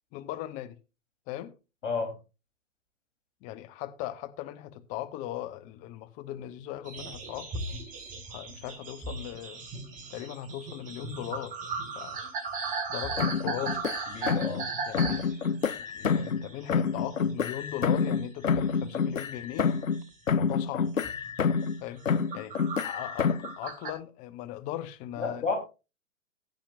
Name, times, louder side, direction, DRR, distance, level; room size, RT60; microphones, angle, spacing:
voice 1, 0.1-0.8 1.3-1.6 3.4-7.7 8.3-9.6 10.1-11.6 11.9-12.2 12.9-13.8 14.9-15.4 15.9-19.7 20.3-20.9 21.8-22.1 22.3-25.5, left 13 dB, 20° left, 0.6 m, -38 dB
voice 2, 1.8-2.1 14.1-14.7 25.2-25.6, left 4 dB, 70° left, 3.8 m, -31 dB
sound 1, 6.8-17.3 17.6-18.3 18.5-20.0 20.5-20.7 21.0-21.3 21.8-23.9, right 4 dB, 20° right, 1.9 m, -37 dB
sound 2, 13.2-14.7 14.9-16.4 16.7-20.0 20.3-21.8 22.1-23.5, left 6 dB, 85° left, 0.7 m, -28 dB
16.5 x 8.8 x 2.5 m
figure-of-eight pair, 120°, 38 cm